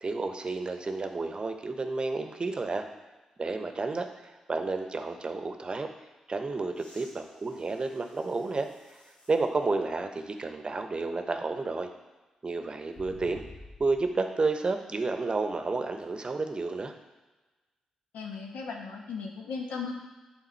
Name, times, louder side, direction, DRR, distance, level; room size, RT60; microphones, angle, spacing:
voice 1, 0.0-2.9 3.4-5.9 6.3-8.7 9.3-11.9 12.4-13.4 13.8-16.9, right 3 dB, 40° right, 6 dB, 0.8 m, -31 dB
sound 1, 6.7-9.5 10.1-10.2 12.9-14.2 16.0-16.1, left 2 dB, 55° left, 1.6 m, -52 dB
voice 2, 18.1-19.9, left 5 dB, 80° left, 1 dB, 1.0 m, -36 dB
8.2 x 3.6 x 4.4 m, 1.2 s
supercardioid pair, 45°, 2 cm